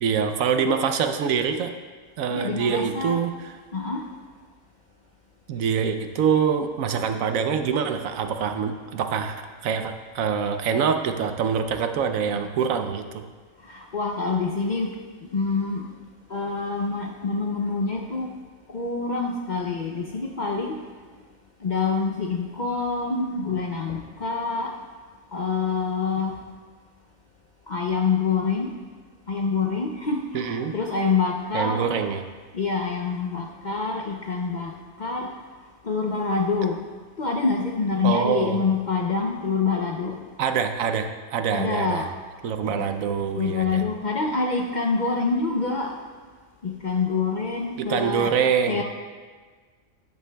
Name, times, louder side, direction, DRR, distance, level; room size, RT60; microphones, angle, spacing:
voice 1, 0.0-1.7 2.2-3.3 5.5-13.2 30.3-30.7 31.5-32.2 38.0-38.6 40.4-42.0 42.4-43.8 47.8-48.8, right 7 dB, 80° right, 7 dB, 1.1 m, -25 dB
voice 2, 2.3-3.2 3.7-4.1 13.6-15.0 15.3-15.9 16.3-18.3 18.7-20.8 21.6-24.7 25.3-26.4 27.7-28.7 29.3-32.0 32.5-34.7 35.0-35.3 35.8-36.8 37.2-40.2 41.5-42.1 42.8-42.9 43.4-46.0 46.6-48.3 48.7-48.8, left 4 dB, 50° left, 1 dB, 0.5 m, -26 dB
12.5 x 9.6 x 2.3 m, 1.5 s
omnidirectional pair, 1.4 m